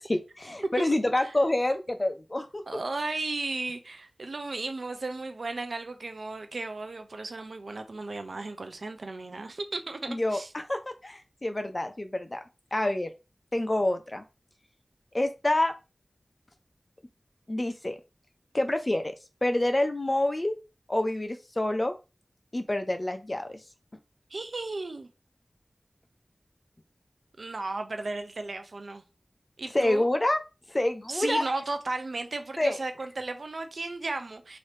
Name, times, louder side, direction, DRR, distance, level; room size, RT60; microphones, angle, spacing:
voice 1, 0.0-2.6 10.1-12.4 12.7-13.1 13.5-14.2 15.1-15.7 17.5-18.0 18.5-19.1 19.4-20.5 20.9-21.9 22.5-23.6 29.7-30.4 30.7-31.4 32.6-32.8, left 1 dB, 35° left, 0.6 m, -27 dB
voice 2, 2.7-10.5 24.3-25.1 27.4-29.0 29.6-30.1 31.1-34.6, right 3 dB, 80° right, 0.6 m, -35 dB
2.9 x 2.7 x 3.3 m
wide cardioid pair, 40°, 0 cm